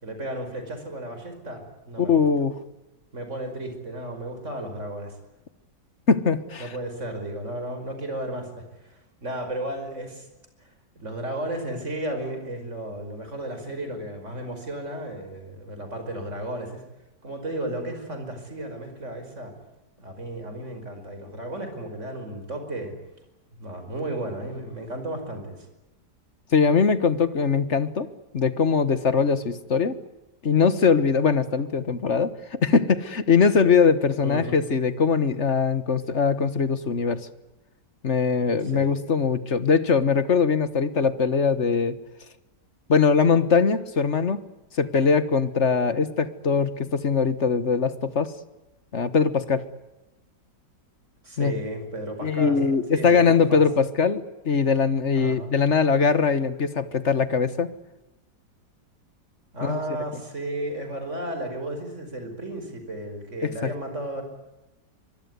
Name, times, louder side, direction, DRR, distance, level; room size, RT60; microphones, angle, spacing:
voice 1, 0.0-2.2 3.1-5.1 6.6-10.3 10.6-16.8 17.2-19.5 20.0-22.9 23.6-25.7 34.2-34.6 38.6-38.9 51.2-52.6 52.9-53.6 55.2-55.5 59.5-64.2, right 1 dB, 40° right, 6 dB, 5.5 m, -34 dB
voice 2, 2.0-2.6 6.1-6.7 26.5-28.1 28.3-30.0 30.4-37.3 38.0-42.0 42.9-44.4 44.8-48.3 48.9-49.6 51.4-51.5 52.2-57.7 59.6-59.8 63.4-63.7, left 5 dB, 45° left, 13 dB, 1.5 m, -21 dB
24.5 x 22.0 x 9.6 m, 0.99 s
omnidirectional pair, 1.9 m